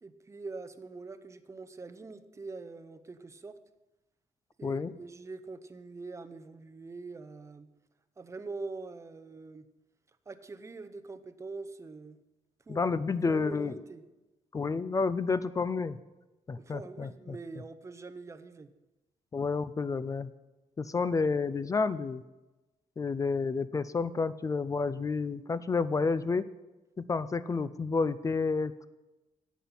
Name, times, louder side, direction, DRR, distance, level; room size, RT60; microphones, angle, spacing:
voice 1, 0.0-3.6 4.6-7.7 8.2-9.7 10.3-12.2 12.7-12.8 13.3-14.0 16.6-18.7, right 3 dB, 20° right, 10 dB, 0.7 m, -44 dB
voice 2, 4.6-4.9 12.7-13.7 14.5-16.0 16.5-17.1 19.3-20.3 20.8-22.2 23.0-26.5 27.0-28.9, left 4 dB, 25° left, 15 dB, 0.4 m, -30 dB
10.0 x 8.3 x 5.5 m, 1.1 s
cardioid pair, 130°, 13 cm